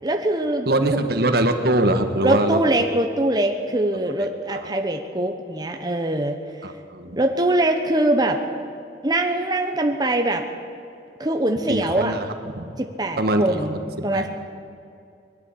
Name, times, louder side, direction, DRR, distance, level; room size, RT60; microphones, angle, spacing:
voice 1, 0.0-1.0 2.2-6.4 7.2-8.4 9.0-10.4 11.2-12.2 12.8-13.8 14.0-14.3, right 1 dB, 25° right, 4 dB, 1.0 m, -22 dB
voice 2, 0.7-2.6 4.2-4.7 6.6-7.2 11.7-12.3 12.5-12.6 13.2-13.6 14.1-14.3, right 1 dB, 60° right, 7 dB, 1.6 m, -22 dB
21.0 x 13.0 x 9.8 m, 2.4 s
head